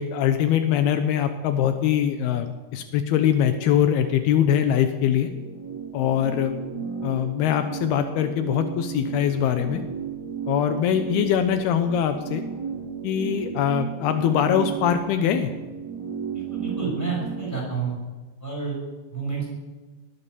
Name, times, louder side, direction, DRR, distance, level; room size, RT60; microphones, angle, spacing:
voice 1, 0.0-5.3 5.9-6.5 7.0-9.8 10.5-12.4 13.0-15.5, left 9 dB, 80° left, 8 dB, 2.8 m, -22 dB
sound 1, 5.0-17.5, right 6 dB, 20° right, 2.9 m, -34 dB
voice 2, 16.3-18.0 18.4-18.8 19.1-19.6, right 5 dB, 5° left, -2 dB, 7.2 m, -29 dB
20.0 x 9.9 x 6.9 m, 1.3 s
omnidirectional pair, 4.5 m